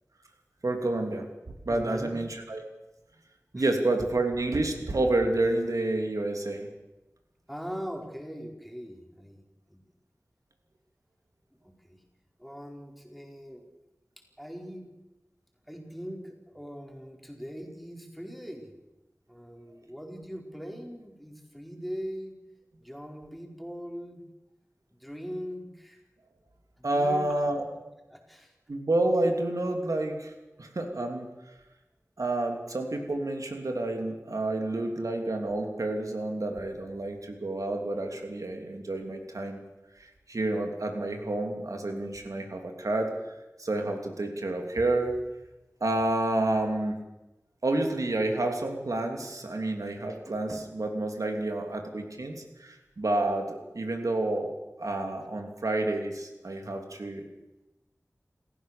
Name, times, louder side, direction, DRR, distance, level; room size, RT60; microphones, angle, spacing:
voice 1, 0.6-1.3 1.6-2.6 3.5-6.7 26.8-27.6 28.7-30.3 30.6-31.3 32.2-39.6 40.0-43.1 43.6-45.2 45.8-47.0 47.6-54.5 54.8-57.3, right 2 dB, 90° right, 3 dB, 3.1 m, -29 dB
voice 2, 1.7-2.2 3.5-3.7 7.5-9.8 11.6-12.0 12.4-13.6 14.4-14.9 15.7-18.7 19.3-22.3 22.8-24.2 25.0-26.0 26.8-27.3 28.1-28.5, equal, ahead, 1 dB, 4.5 m, -41 dB
28.5 x 15.0 x 6.9 m, 1.0 s
wide cardioid pair, 55°, 6 cm